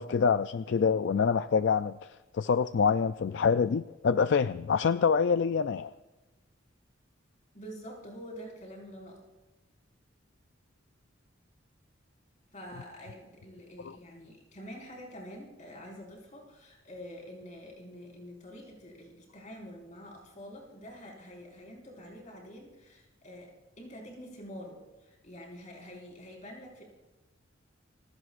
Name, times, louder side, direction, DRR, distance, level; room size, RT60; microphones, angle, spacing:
voice 1, 0.0-5.9 13.8-14.0, left 6 dB, 60° left, 12 dB, 0.4 m, -26 dB
voice 2, 7.5-9.2 12.5-26.8, equal, 40° left, -2 dB, 5.2 m, -47 dB
28.5 x 17.0 x 2.5 m, 1.1 s
head